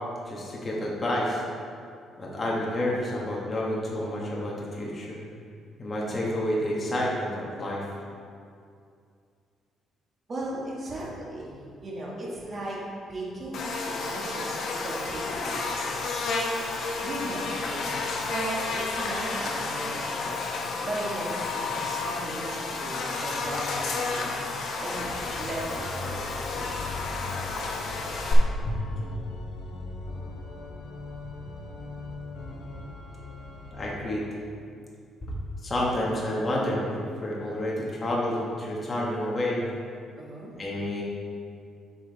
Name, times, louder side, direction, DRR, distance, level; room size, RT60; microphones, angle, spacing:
voice 1, 0.3-1.4 2.2-5.2 5.8-7.8 28.6-28.8 33.7-34.2 35.2-35.3 35.6-39.6 40.6-41.0, left 1 dB, 25° left, -4 dB, 1.2 m, -29 dB
voice 2, 2.2-2.5 10.3-12.8 13.1-15.9 17.0-20.4 20.8-24.4 24.8-26.7 40.1-40.6, right 1 dB, 30° right, -4 dB, 1.6 m, -37 dB
Buzz, 13.5-28.3, left 3 dB, 60° left, 0.9 m, -31 dB
Organ, 24.9-34.2, left 2 dB, 90° left, 1.0 m, -40 dB
8.1 x 5.1 x 4.0 m, 2.4 s
cardioid pair, 145°, 0 cm